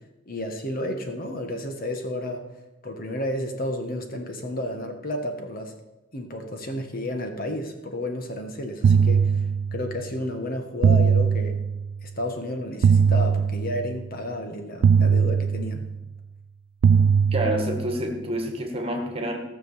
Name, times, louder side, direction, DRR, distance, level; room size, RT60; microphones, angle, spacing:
voice 1, 0.3-2.4 2.8-5.7 6.1-11.6 12.0-15.9, left 1 dB, 45° left, 5 dB, 1.4 m, -31 dB
sound 1, 8.8-10.0 10.8-12.0 12.8-14.0 14.8-16.0 16.8-18.0, right 6 dB, 70° right, 0.3 m, -20 dB
voice 2, 17.3-19.4, right 1 dB, 30° right, 3 dB, 1.8 m, -28 dB
15.5 x 6.3 x 7.1 m, 1.0 s
head